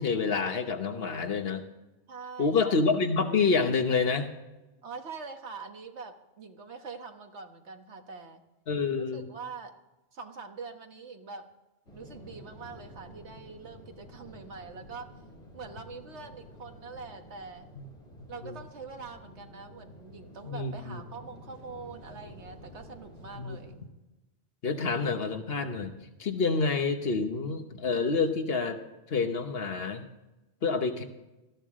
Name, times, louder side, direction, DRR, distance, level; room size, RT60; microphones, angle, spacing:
voice 1, 0.0-1.7 2.4-4.3 8.7-9.3 17.8-17.9 18.4-18.6 20.4-21.0 23.3-23.6 24.6-25.9 26.2-28.8 29.1-30.1 30.6-31.0, left 4 dB, 60° left, 7 dB, 1.4 m, -28 dB
voice 2, 2.1-2.8 4.8-8.4 9.1-9.7 10.1-11.5 11.9-15.1 15.5-17.7 18.3-23.8, right 4 dB, 80° right, 5 dB, 1.7 m, -44 dB
sound 1, 11.9-23.8, equal, 75° left, 5.2 m, -50 dB
18.5 x 14.0 x 3.7 m, 1.0 s
omnidirectional pair, 1.1 m